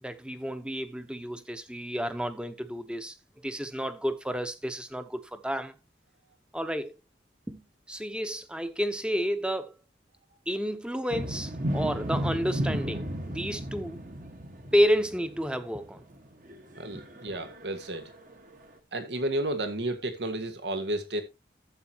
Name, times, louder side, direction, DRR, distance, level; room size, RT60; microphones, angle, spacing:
voice 1, 0.0-5.8 6.5-6.9 7.5-9.8 10.5-14.1 14.7-16.0 16.9-17.0, equal, 5° right, 0.9 m, -30 dB
sound 1, 11.1-18.7, equal, 50° right, 1.5 m, -34 dB
voice 2, 16.8-18.1 18.9-21.2, right 1 dB, 80° right, 1.8 m, -32 dB
12.5 x 8.0 x 2.9 m
head